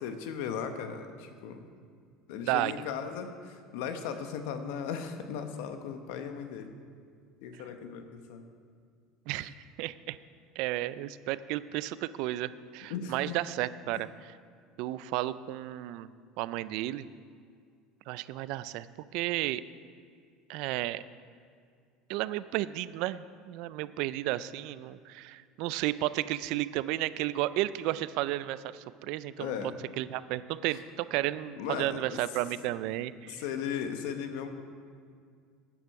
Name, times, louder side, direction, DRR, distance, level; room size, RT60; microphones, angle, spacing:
voice 1, 0.0-1.7 2.3-6.8 7.4-8.4 12.9-13.4 13.9-14.0 29.4-29.8 30.7-30.8 31.6-32.2 32.6-32.7 33.3-34.5, left 7 dB, 70° left, 7 dB, 1.0 m, -37 dB
voice 2, 9.3-10.2 10.6-14.4 14.8-16.1 16.4-17.1 18.1-18.9 19.1-19.6 20.5-21.0 22.1-29.5 30.0-33.4, right 15 dB, 55° right, 16 dB, 0.3 m, -33 dB
13.0 x 9.3 x 4.7 m, 2.2 s
cardioid pair, 175°, 0 cm